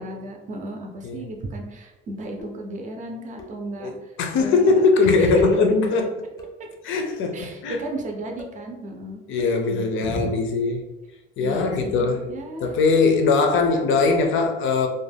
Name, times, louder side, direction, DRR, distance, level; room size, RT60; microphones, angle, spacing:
voice 1, 0.0-4.1 4.4-5.4 7.3-9.2 9.7-10.4 11.4-12.8, right 1 dB, 40° right, 0.5 m, -34 dB
sound 1, 2.4-2.8 3.4-3.8 4.4-4.7 5.4-5.7 6.4-6.7 7.4-7.7 8.4-8.6 9.4-9.7, left 3 dB, 20° left, 0.4 m, -42 dB
voice 2, 4.2-6.1 6.8-7.8 9.3-10.8 11.4-12.3 12.6-14.9, left 4 dB, 90° left, 0.5 m, -20 dB
2.4 x 2.2 x 3.3 m
cardioid pair, 155°, 20 cm